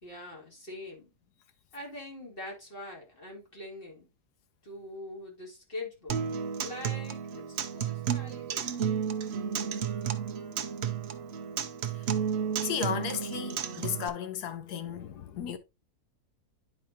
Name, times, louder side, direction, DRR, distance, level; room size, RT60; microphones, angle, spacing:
voice 1, 0.0-1.1 1.7-4.1 4.6-6.2 6.6-8.9, left 2 dB, 35° left, 2.5 m, -43 dB
Acoustic guitar, 6.1-14.1, right 7 dB, 55° right, 0.7 m, -32 dB
voice 2, 12.6-15.6, left 8 dB, 90° left, 1.4 m, -34 dB
10.0 x 4.7 x 2.8 m
omnidirectional pair, 1.7 m